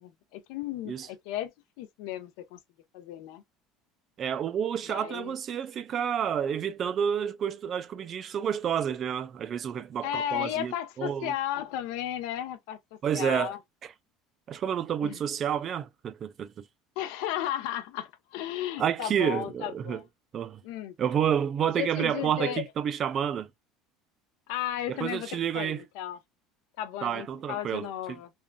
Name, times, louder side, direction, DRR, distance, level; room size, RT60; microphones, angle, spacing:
voice 1, 0.0-1.5 1.8-2.6 2.9-3.4 4.9-5.3 10.0-13.6 15.0-15.2 17.0-20.0 20.6-20.9 21.8-22.6 24.5-26.2 26.8-28.3, left 12 dB, 75° left, 0.7 m, -34 dB
voice 2, 4.2-11.3 13.0-13.5 13.8-13.9 14.5-16.7 18.8-20.0 20.3-20.6 21.0-23.5 24.9-25.8 27.0-28.2, right 8 dB, 35° right, 0.3 m, -29 dB
3.6 x 2.3 x 2.2 m
cardioid pair, 155°, 0 cm